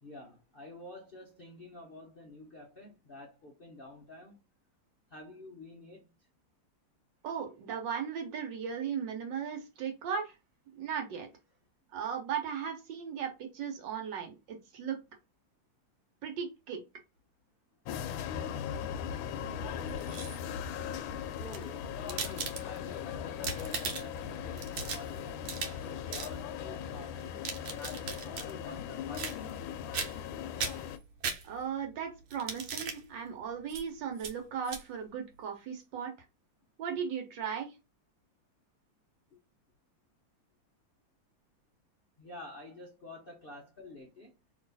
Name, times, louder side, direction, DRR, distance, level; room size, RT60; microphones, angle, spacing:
voice 1, 0.0-4.4 5.1-6.1 21.4-27.4 27.8-29.8 42.2-44.3, left 2 dB, 55° left, 0.6 m, -49 dB
voice 2, 7.2-10.3 10.8-11.3 11.9-15.0 16.2-16.8 31.4-36.1 36.8-37.7, right 7 dB, 65° right, 1.5 m, -37 dB
sound 1, 17.8-31.0, left 8 dB, 75° left, 1.3 m, -39 dB
sound 2, 19.9-20.6 21.3-22.9 23.3-24.2 24.6-25.8 26.1-26.3 27.2-28.5 29.1-29.7 29.9-30.3 30.6-31.8 32.3-33.0 33.7-33.8 34.2-34.3 34.7-34.8, right 5 dB, 80° right, 1.6 m, -38 dB
3.1 x 3.0 x 3.9 m
omnidirectional pair, 2.3 m